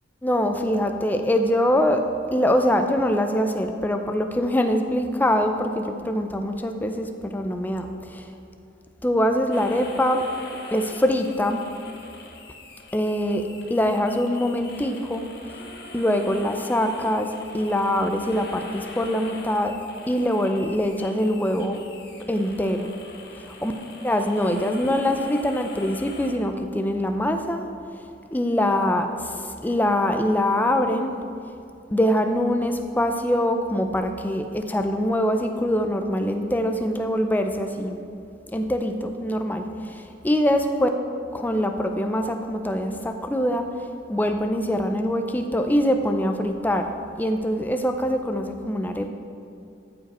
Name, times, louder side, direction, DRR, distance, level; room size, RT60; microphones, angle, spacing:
voice 1, 0.2-2.0 2.3-8.2 9.0-10.2 10.7-11.6 12.9-15.3 15.9-19.8 20.1-21.8 22.3-22.9 23.6-23.7 24.0-27.6 28.3-31.1 31.9-38.0 38.5-40.9 41.3-43.7 44.1-49.1, equal, 10° left, 6 dB, 0.4 m, -23 dB
sound 1, 9.5-26.3, left 2 dB, 55° left, 0.9 m, -43 dB
13.5 x 4.9 x 4.2 m, 2.5 s
head